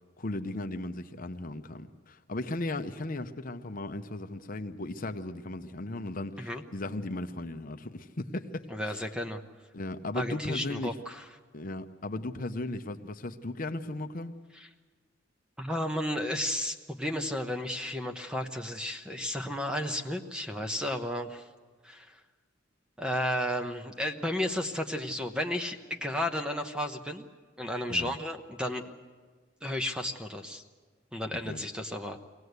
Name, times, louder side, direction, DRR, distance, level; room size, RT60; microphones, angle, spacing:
voice 1, 0.2-9.1 9.7-11.0 11.5-14.3 27.9-28.1 31.4-31.6, left 2 dB, 45° left, 7 dB, 0.8 m, -36 dB
voice 2, 8.7-9.4 10.1-11.2 14.6-14.7 15.6-21.5 21.8-22.2 23.0-27.3 27.6-28.9 29.6-30.6 31.1-32.2, left 1 dB, 5° right, 5 dB, 1.0 m, -33 dB
23.5 x 17.5 x 8.1 m, 1.4 s
head